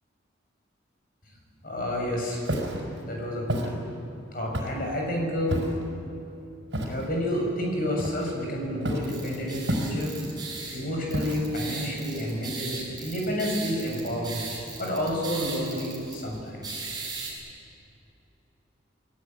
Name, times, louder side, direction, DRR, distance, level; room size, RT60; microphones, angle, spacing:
voice 1, 1.6-2.4 3.0-3.6 4.3-5.6 6.9-10.1 10.7-14.4 14.8-16.8, equal, 45° left, 0 dB, 7.1 m, -30 dB
Walk footsteps, 2.4-2.8 3.5-3.7 4.5-4.9 5.5-5.9 6.7-7.1 8.0-8.4 8.8-9.2 9.7-10.2 11.1-11.6, equal, 65° right, 4.9 m, -30 dB
sound 1, 9.0-17.3, right 4 dB, 20° right, 6.4 m, -38 dB
28.5 x 18.5 x 9.1 m, 2.9 s
head